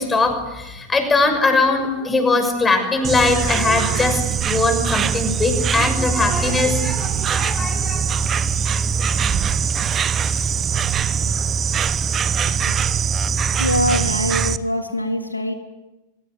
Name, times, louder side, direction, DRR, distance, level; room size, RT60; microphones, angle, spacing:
voice 1, 0.0-8.1, left 3 dB, 15° left, 6 dB, 6.5 m, -20 dB
Insect, 3.0-14.6, right 6 dB, 25° right, 0.9 m, -22 dB
voice 2, 13.6-15.5, left 1 dB, 85° left, 5 dB, 3.6 m, -23 dB
23.5 x 23.0 x 9.6 m, 1.0 s
figure-of-eight pair, 90°, 0 cm